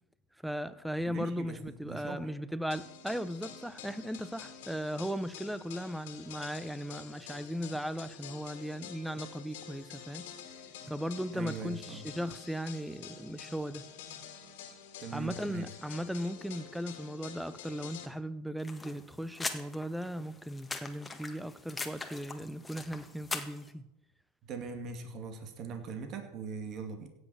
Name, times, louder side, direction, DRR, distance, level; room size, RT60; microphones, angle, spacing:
voice 1, 0.4-10.3 10.9-13.9 15.1-23.9, equal, ahead, 0.8 m, -37 dB
voice 2, 1.1-2.3 11.3-12.1 15.0-15.7 24.4-27.1, right 5 dB, 45° right, 2.5 m, -41 dB
sound 1, 2.7-18.1, left 8 dB, 75° left, 2.2 m, -48 dB
sound 2, 18.6-23.7, left 3 dB, 15° left, 1.7 m, -41 dB
16.5 x 7.1 x 7.3 m
hypercardioid pair, 100°, 0 cm